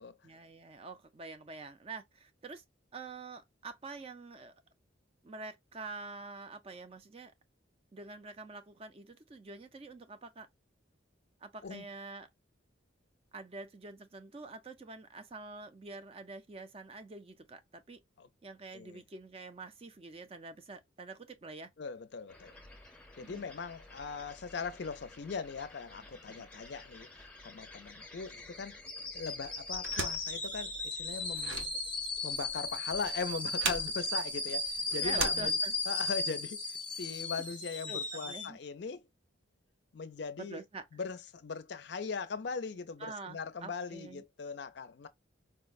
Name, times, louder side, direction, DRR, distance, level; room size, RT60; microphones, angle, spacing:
voice 1, 0.2-2.6 2.9-4.6 5.2-7.3 7.9-10.5 11.4-12.3 13.3-18.0 18.4-21.7 23.2-23.5 26.3-26.4 35.0-35.7 37.9-38.6 40.4-41.0 43.0-44.2, right 3 dB, 30° right, 0.4 m, -46 dB
voice 2, 21.8-22.5 23.2-27.1 27.4-28.8 29.1-31.7 32.2-35.6 35.9-39.1 39.9-40.6 40.9-45.1, left 5 dB, 55° left, 0.4 m, -40 dB
sound 1, 22.3-38.5, left 2 dB, 5° left, 0.7 m, -38 dB
sound 2, 29.7-36.1, right 4 dB, 80° right, 0.8 m, -40 dB
4.5 x 2.1 x 2.3 m
head